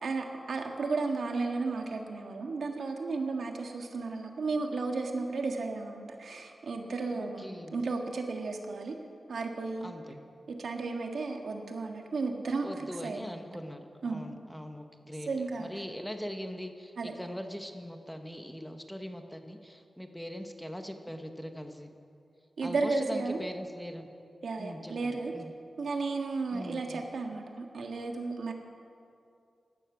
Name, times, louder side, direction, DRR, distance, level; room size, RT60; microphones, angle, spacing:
voice 1, 0.0-9.0 9.3-9.9 10.5-12.7 13.0-13.4 14.0-14.2 15.3-15.7 17.0-17.1 22.6-23.4 24.4-25.3 25.8-28.5, right 3 dB, 85° right, 3 dB, 1.6 m, -33 dB
voice 2, 7.1-7.7 9.8-10.2 12.6-22.0 22.6-24.1 24.6-25.5 26.5-27.0, equal, 5° left, 5 dB, 1.0 m, -41 dB
17.0 x 11.5 x 6.2 m, 2.5 s
wide cardioid pair, 115°, 0 cm